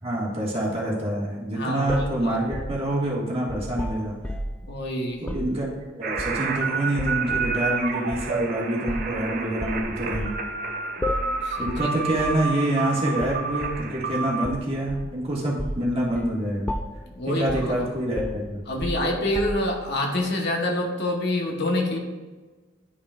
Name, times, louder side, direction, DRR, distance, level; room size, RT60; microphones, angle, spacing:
voice 1, 0.0-4.2 5.2-5.7 5.9-10.4 11.6-16.7 17.3-18.6, right 1 dB, 30° right, -5 dB, 1.8 m, -26 dB
voice 2, 1.5-2.4 4.7-5.2 11.4-12.0 17.1-17.5 18.7-22.0, left 1 dB, 60° left, 1 dB, 1.1 m, -26 dB
sound 1, 1.9-4.7 5.2-5.5 6.2-6.6 7.0-7.6 8.1-8.3 8.9-9.2 9.6-10.4 11.0-11.4 11.7-11.9 12.2-12.4 13.2-13.8 14.4-15.2 15.6-15.9 16.2-16.4 16.7-17.1 17.5-17.8 18.2-19.8, left 1 dB, 5° left, 0.3 m, -32 dB
sound 2, 6.0-14.5, right 4 dB, 50° right, 0.7 m, -29 dB
11.0 x 5.4 x 2.5 m, 1.3 s
head